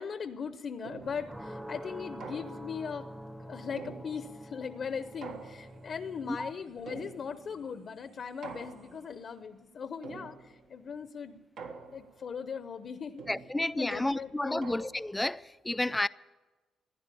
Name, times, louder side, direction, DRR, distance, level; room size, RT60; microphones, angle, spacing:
voice 1, 0.0-3.1 3.4-11.4 11.9-13.2 13.6-14.7, left 6 dB, 55° left, 0.8 m, -39 dB
sound 1, 0.8-1.4 2.2-2.9 3.8-4.5 5.2-6.0 6.9-7.6 8.4-9.2 10.0-10.7 11.6-12.3 13.2-15.2, right 5 dB, 80° right, 1.6 m, -46 dB
sound 2, 1.0-6.5, equal, 5° right, 0.8 m, -46 dB
sound 3, 4.5-9.4, right 3 dB, 40° right, 1.3 m, -63 dB
voice 2, 13.3-16.1, left 1 dB, 10° left, 0.4 m, -31 dB
15.5 x 10.5 x 8.3 m
cardioid pair, 90°, 0 cm